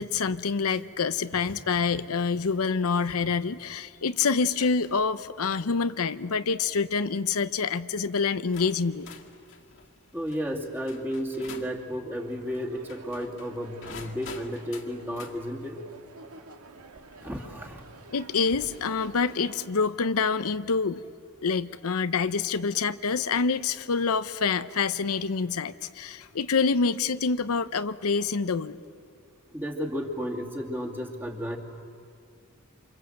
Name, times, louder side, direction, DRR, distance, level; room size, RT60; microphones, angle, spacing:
voice 1, 0.0-9.1 18.1-21.0 21.4-28.8, left 5 dB, 75° left, 12 dB, 0.7 m, -26 dB
sound 1, 4.8-5.1 5.6-6.0 6.8-7.1 7.9-8.0 8.5-11.8 12.8-15.4 17.1-17.2 18.5-19.2, left 5 dB, 60° left, 2.2 m, -47 dB
voice 2, 10.1-15.8 17.2-17.8 29.5-31.6, equal, 10° right, 0 dB, 2.6 m, -33 dB
sound 2, 12.1-19.7, right 3 dB, 85° right, 2.1 m, -49 dB
28.0 x 26.5 x 8.0 m, 2.4 s
head